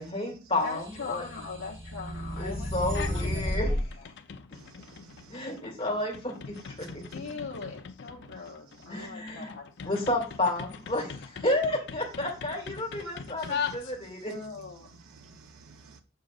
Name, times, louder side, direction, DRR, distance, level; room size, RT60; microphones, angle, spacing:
voice 1, 0.0-1.3 2.4-3.7 5.3-7.0 8.9-9.5 9.8-14.4, left 1 dB, 25° left, 2.2 m, -31 dB
voice 2, 0.6-2.7 3.1-3.4 4.0-4.1 7.1-9.9 14.3-14.9, left 5 dB, 85° left, 1.0 m, -40 dB
sound 1, 0.9-3.8, left 1 dB, 60° right, 4.3 m, -32 dB
sound 2, 2.8-3.3 3.7-14.3, left 6 dB, 55° left, 0.5 m, -41 dB
voice 3, 4.5-5.5 6.8-6.9 9.0-9.1 13.4-13.5 15.0-16.0, right 4 dB, 85° right, 0.7 m, -53 dB
7.9 x 6.8 x 2.4 m
head